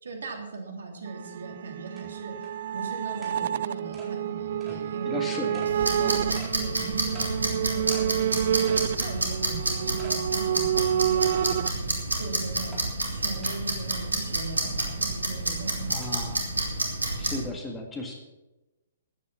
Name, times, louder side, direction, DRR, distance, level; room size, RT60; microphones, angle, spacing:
voice 1, 0.0-12.8 13.1-16.2, right 3 dB, 70° right, 3 dB, 3.2 m, -39 dB
sound 1, 1.1-11.7, right 10 dB, 50° right, 0.3 m, -29 dB
sound 2, 1.2-1.3 2.0-2.1 2.4-2.5 3.2-3.4 3.9-4.1 4.6-4.8 5.5-5.7 6.4-6.5 7.1-7.3 7.9-8.1 8.6-8.9 9.3-9.4 10.0-10.2 10.6-10.7 11.4-11.8 12.7-12.8 13.4-13.6 14.8-15.0 16.0-16.1, right 3 dB, 10° right, 3.9 m, -46 dB
voice 2, 5.1-5.7 6.0-6.2 15.9-16.5 17.2-18.1, left 2 dB, 15° left, 1 dB, 2.0 m, -35 dB
sound 3, 5.7-17.4, right 2 dB, 85° right, 3.2 m, -29 dB
14.5 x 9.5 x 5.9 m, 1.0 s
figure-of-eight pair, 125°, 0 cm